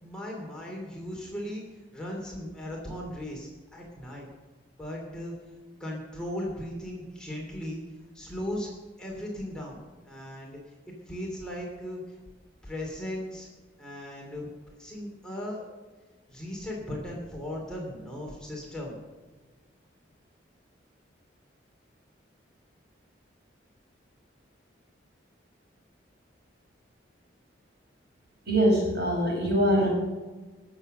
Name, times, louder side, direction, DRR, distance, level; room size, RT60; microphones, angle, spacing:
voice 1, 0.0-1.6 1.9-4.3 4.8-5.3 5.8-7.8 8.1-8.7 9.0-9.8 10.1-10.6 11.1-12.0 12.6-13.5 13.8-15.6 16.3-19.0, left 1 dB, 5° left, -3 dB, 2.7 m, -37 dB
voice 2, 28.5-29.9, equal, 55° right, -2 dB, 5.4 m, -23 dB
19.5 x 7.3 x 6.6 m, 1.3 s
head